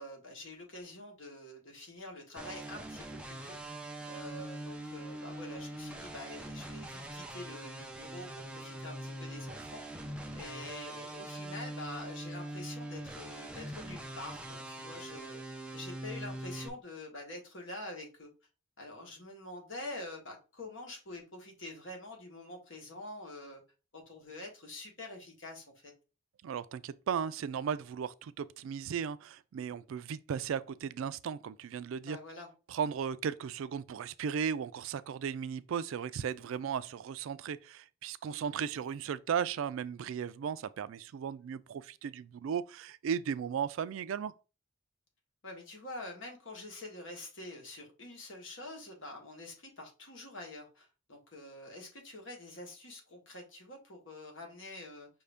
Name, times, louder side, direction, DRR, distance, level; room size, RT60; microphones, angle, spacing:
voice 1, 0.0-3.6 4.0-8.3 8.5-9.8 10.3-15.4 15.7-18.3 18.8-23.6 23.9-25.9 32.0-32.5 38.2-38.5 45.4-55.1, left 2 dB, 60° left, 1.4 m, -46 dB
sound 1, 2.4-16.7, right 1 dB, 5° right, 0.5 m, -43 dB
voice 2, 26.4-32.2 32.7-44.3, right 7 dB, 70° right, 0.3 m, -36 dB
5.6 x 2.6 x 3.4 m
head